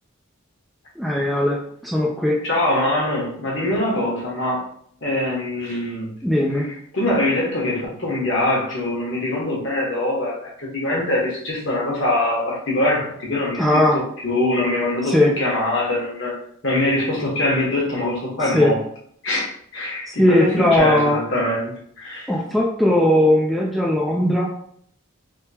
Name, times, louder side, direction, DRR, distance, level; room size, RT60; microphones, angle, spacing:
voice 1, 1.0-2.4 6.2-6.7 13.6-14.0 15.1-15.3 18.5-18.7 20.2-21.2 22.3-24.5, left 1 dB, ahead, -3 dB, 0.4 m, -18 dB
voice 2, 2.4-4.6 5.0-6.1 6.5-16.3 16.6-18.8 19.2-22.3, left 1 dB, 60° left, -4 dB, 1.3 m, -23 dB
3.6 x 2.8 x 2.8 m, 0.64 s
head